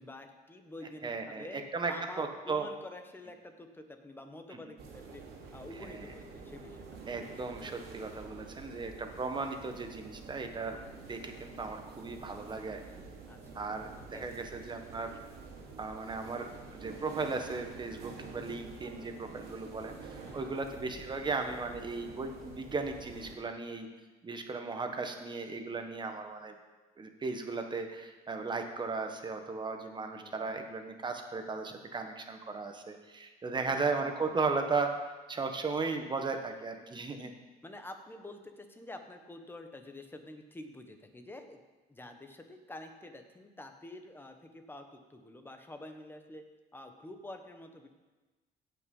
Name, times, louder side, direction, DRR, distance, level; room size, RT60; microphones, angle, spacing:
voice 1, 0.0-5.2 5.5-7.0 13.3-14.6 20.2-20.5 30.2-30.5 33.6-34.3 37.6-41.6 41.9-46.4 46.7-47.9, left 1 dB, 10° left, 5 dB, 1.3 m, -48 dB
voice 2, 1.0-1.5 1.7-2.7 4.5-4.6 5.8-6.0 7.1-10.8 11.1-12.8 13.5-15.2 15.8-23.9 24.2-26.5 27.0-37.3, right 4 dB, 25° right, 5 dB, 1.4 m, -36 dB
sound 1, 4.8-23.3, right 4 dB, 75° right, 2.4 m, -48 dB
17.0 x 5.9 x 5.5 m, 1.2 s
cardioid pair, 110°, 17 cm